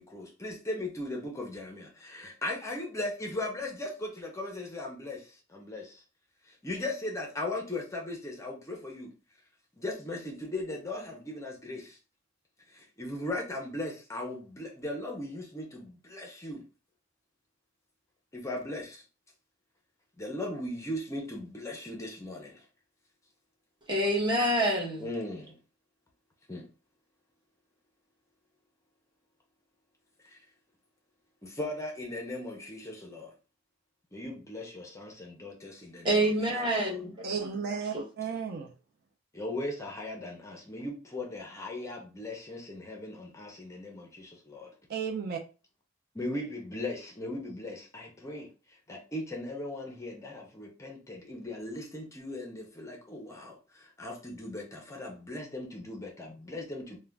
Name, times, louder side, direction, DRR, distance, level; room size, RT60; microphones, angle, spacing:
voice 1, 0.0-6.0 6.6-9.1 9.8-12.0 12.7-16.6 18.3-19.0 20.2-22.6 25.0-25.5 26.5-26.7 30.2-30.4 31.4-33.3 34.1-36.3 36.9-37.0 39.3-44.7 46.2-48.5 48.9-57.0, left 1 dB, 15° left, 0.5 m, -38 dB
voice 2, 23.9-25.1 36.0-37.1 37.9-38.0, right 1 dB, 25° right, 0.9 m, -26 dB
voice 3, 37.2-38.7 44.9-45.4, right 6 dB, 55° right, 0.4 m, -34 dB
2.4 x 2.1 x 3.2 m
head